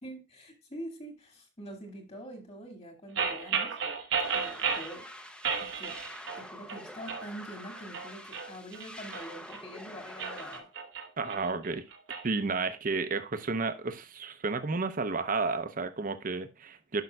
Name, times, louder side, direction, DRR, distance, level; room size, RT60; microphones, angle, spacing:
voice 1, 0.0-3.8 4.3-5.1 5.6-6.0 6.4-10.7, equal, 35° left, 2.0 m, -45 dB
sound 1, 3.2-4.9 5.4-6.4 6.7-7.3 7.8-9.6 10.1-12.2, right 6 dB, 80° right, 1.1 m, -33 dB
sound 2, 4.2-10.6, equal, 5° left, 0.6 m, -46 dB
voice 2, 11.2-11.8 12.2-17.0, right 4 dB, 45° right, 0.7 m, -32 dB
12.0 x 5.5 x 2.3 m
head